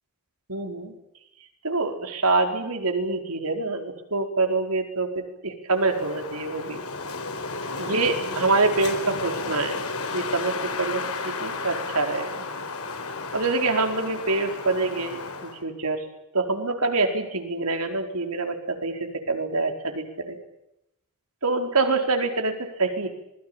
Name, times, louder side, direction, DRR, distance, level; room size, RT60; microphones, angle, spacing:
voice 1, 0.5-0.9 1.6-6.8 7.7-9.8 10.1-10.5 10.8-12.4 13.3-16.0 16.3-20.4 21.4-23.1, right 3 dB, 80° right, 5 dB, 4.7 m, -26 dB
Wind, 5.7-15.6, left 3 dB, 70° left, 4.0 m, -33 dB
26.0 x 21.5 x 9.0 m, 0.84 s
head